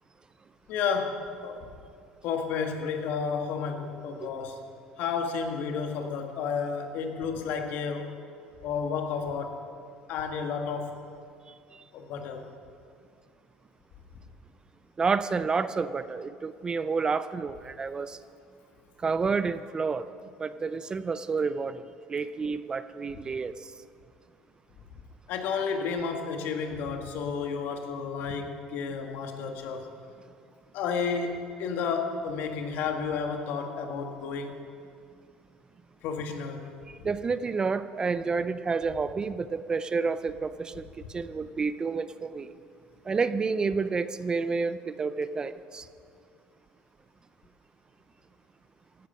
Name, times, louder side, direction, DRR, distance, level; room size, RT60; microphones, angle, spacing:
voice 1, 0.7-1.7 2.2-4.6 5.0-8.2 8.6-9.6 10.1-11.0 11.9-12.5 25.3-29.9 30.7-34.5 36.0-36.7, left 5 dB, 65° left, 4 dB, 1.8 m, -31 dB
voice 2, 15.0-18.2 19.0-20.1 20.4-21.8 22.1-23.7 37.0-42.5 43.1-45.9, right 4 dB, 25° right, 13 dB, 0.5 m, -29 dB
16.5 x 12.0 x 5.6 m, 2.3 s
supercardioid pair, 105°, 3 cm